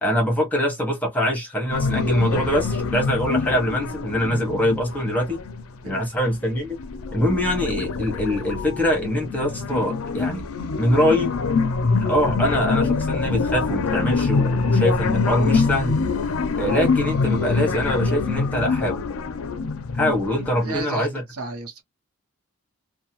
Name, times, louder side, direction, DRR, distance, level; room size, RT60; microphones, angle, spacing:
voice 1, 0.0-5.4 5.8-6.8 7.1-10.4 10.8-11.3 12.0-15.9 16.6-19.0 19.9-21.2, equal, 5° left, 0.9 m, -23 dB
sound 1, 1.7-5.9 6.3-20.7, left 4 dB, 75° left, 0.4 m, -25 dB
voice 2, 20.6-21.8, right 3 dB, 85° right, 0.8 m, -34 dB
2.7 x 2.1 x 2.8 m
head